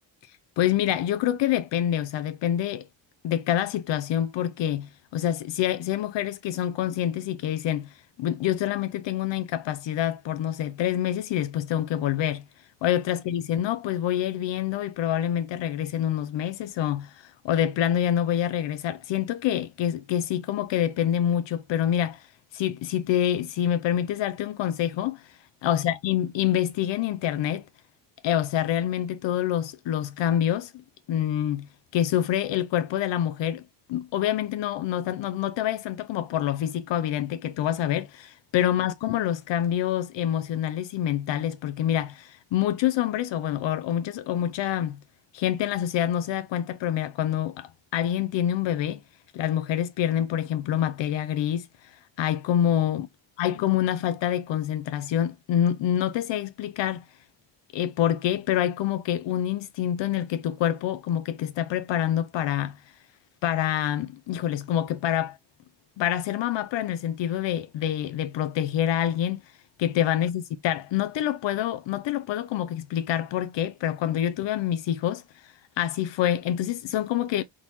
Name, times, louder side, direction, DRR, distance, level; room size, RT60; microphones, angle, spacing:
voice 1, 0.6-2.9 3.2-12.4 12.8-22.3 22.5-25.3 25.6-27.6 28.2-30.7 31.1-31.7 31.9-33.6 33.9-45.0 45.3-49.0 49.3-53.1 53.4-57.0 57.7-62.8 63.4-65.4 66.0-69.4 69.8-77.4, left 11 dB, 80° left, 0.6 m, -26 dB
4.3 x 3.8 x 2.9 m
cardioid pair, 140°, 43 cm